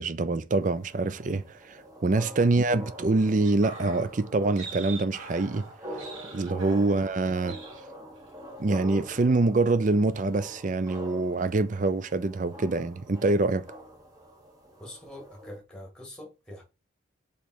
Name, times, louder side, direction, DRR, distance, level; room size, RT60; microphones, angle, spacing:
voice 1, 0.0-5.7 6.0-6.1 6.3-7.6 8.6-13.6, right 2 dB, 40° right, 0.4 m, -25 dB
sound 1, 0.6-15.6, equal, 20° right, 1.3 m, -45 dB
sound 2, 3.4-7.2 7.5-7.8 8.1-8.4, right 4 dB, 85° right, 2.7 m, -43 dB
voice 2, 14.8-16.6, left 1 dB, 5° left, 2.0 m, -44 dB
5.1 x 4.3 x 4.5 m
head